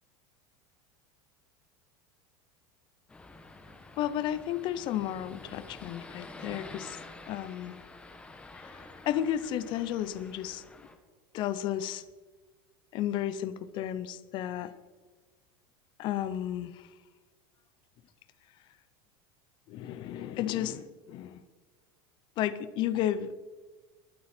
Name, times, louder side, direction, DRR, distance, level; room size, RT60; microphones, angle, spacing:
sound 1, 3.1-10.9, left 2 dB, 10° left, 1.3 m, -48 dB
voice 1, 4.0-7.0 7.3-7.8 8.6-10.6 11.3-12.0 12.9-14.7 16.0-16.9 19.7-21.4 22.4-23.4, left 11 dB, 40° left, 14 dB, 0.7 m, -33 dB
21.5 x 8.5 x 4.4 m, 1.3 s
supercardioid pair, 150°, 12 cm